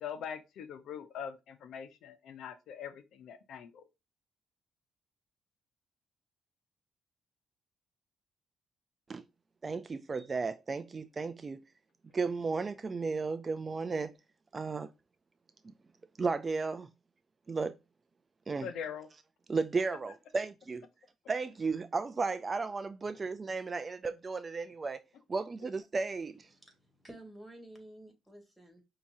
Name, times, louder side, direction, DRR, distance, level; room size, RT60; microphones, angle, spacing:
voice 1, 0.0-3.9 18.6-19.1 19.9-20.0, left 8 dB, 75° left, 0.6 m, -42 dB
voice 2, 9.6-11.6 12.1-14.1 14.5-14.9 16.2-16.9 17.5-17.8 18.5-18.7 19.5-20.9 21.3-25.0 25.3-26.5, right 4 dB, 35° right, 0.4 m, -34 dB
voice 3, 26.5-28.8, right 1 dB, 5° right, 2.0 m, -52 dB
5.8 x 2.9 x 2.6 m
cardioid pair, 90°, 0 cm